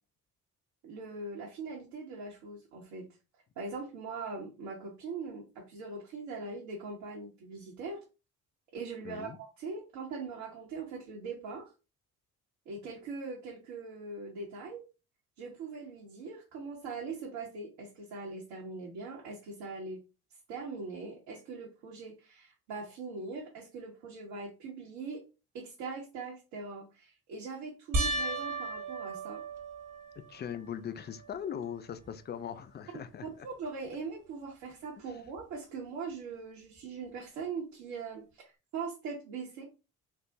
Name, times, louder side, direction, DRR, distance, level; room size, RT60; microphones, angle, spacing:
voice 1, 0.8-3.1 3.6-8.0 8.7-11.7 12.7-14.9 15.4-20.0 20.5-25.2 25.5-29.4 33.4-39.6, right 4 dB, 65° right, 0.9 m, -41 dB
voice 2, 9.0-9.4 30.3-33.5, left 8 dB, 25° left, 0.4 m, -40 dB
sound 1, 27.9-30.5 31.1-31.7 32.1-32.2 35.4-35.5, right 2 dB, 45° right, 0.9 m, -35 dB
3.5 x 2.0 x 2.6 m
figure-of-eight pair, 45°, 44 cm